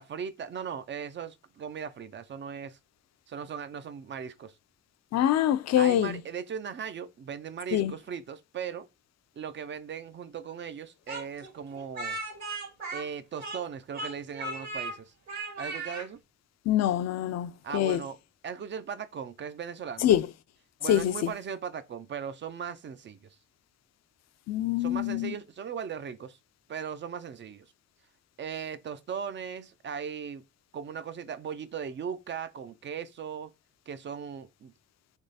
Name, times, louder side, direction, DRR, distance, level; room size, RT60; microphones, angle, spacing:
voice 1, 0.0-2.8 3.3-4.5 5.8-8.9 9.4-12.2 12.9-15.1 15.6-16.2 17.6-18.2 18.4-20.1 20.8-23.3 24.8-26.4 26.7-27.7 28.4-30.4 30.7-33.5 33.9-34.7, right 7 dB, 40° right, 0.4 m, -38 dB
voice 2, 5.1-6.2 7.7-7.9 16.7-18.0 20.0-20.3 20.9-21.3 24.5-25.3, left 11 dB, 60° left, 0.5 m, -25 dB
Speech, 11.1-13.7 13.9-14.9 15.3-16.1, right 2 dB, 65° right, 1.7 m, -37 dB
3.5 x 3.2 x 4.0 m
cardioid pair, 90°, 30 cm